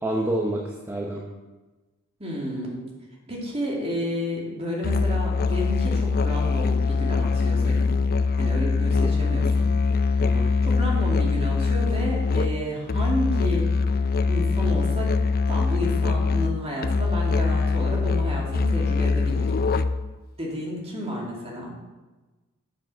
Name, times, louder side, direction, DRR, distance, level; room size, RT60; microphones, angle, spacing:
voice 1, 0.0-0.6 0.9-1.2 9.0-9.1 10.2-10.5, right 1 dB, 10° right, -1 dB, 0.9 m, -27 dB
voice 2, 2.2-2.8 3.3-7.9 8.4-9.7 10.1-13.7 14.3-15.1 15.5-19.6 20.4-21.7, equal, 30° right, -3 dB, 2.5 m, -31 dB
Musical instrument, 4.8-20.2, left 4 dB, 45° left, 0.4 m, -23 dB
7.9 x 7.0 x 6.1 m, 1.2 s
head